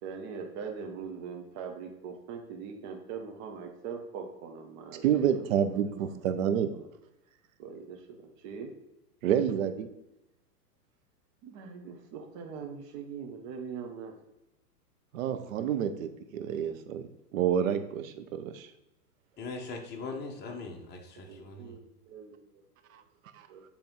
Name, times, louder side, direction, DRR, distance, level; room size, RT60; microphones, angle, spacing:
voice 1, 0.0-6.0 6.7-6.9 7.6-8.7 11.4-14.1 21.3-23.0 23.5-23.6, right 6 dB, 35° right, 3 dB, 1.2 m, -42 dB
voice 2, 5.0-6.7 9.2-9.9 15.1-18.7 23.4-23.5, right 9 dB, 55° right, 8 dB, 0.9 m, -29 dB
voice 3, 19.4-21.8, left 3 dB, 20° left, 2 dB, 1.1 m, -40 dB
7.7 x 3.5 x 4.6 m, 0.91 s
hypercardioid pair, 115°, 48 cm